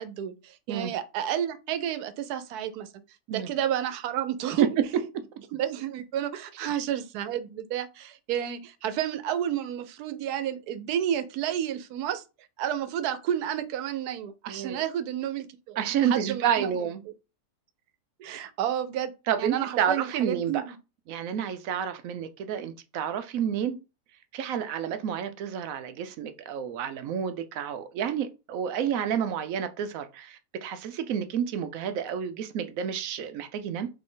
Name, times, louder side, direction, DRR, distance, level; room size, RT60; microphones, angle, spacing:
voice 1, 0.0-2.9 3.3-4.7 5.5-12.2 12.6-15.8 16.0-16.7 18.2-19.1 19.4-20.8, right 10 dB, 90° right, 1.1 m, -31 dB
voice 2, 14.5-14.8 15.8-17.0 19.3-20.6 21.1-23.8 24.3-33.9, right 8 dB, 70° right, 0.9 m, -29 dB
4.0 x 3.2 x 3.8 m
omnidirectional pair, 1.6 m